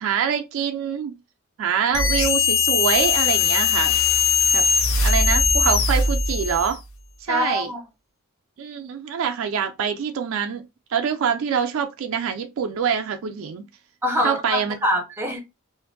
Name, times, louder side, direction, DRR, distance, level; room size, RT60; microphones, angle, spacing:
voice 1, 0.0-1.1 1.6-4.0 4.5-4.6 5.0-6.8 7.2-7.7 8.6-10.6 10.9-13.7 14.2-14.8, right 7 dB, 65° right, 0.3 m, -25 dB
sound 1, 1.9-6.8, left 5 dB, 60° left, 0.5 m, -20 dB
voice 2, 7.3-7.8 14.0-15.4, left 1 dB, 10° right, 0.6 m, -24 dB
2.5 x 2.5 x 2.5 m
head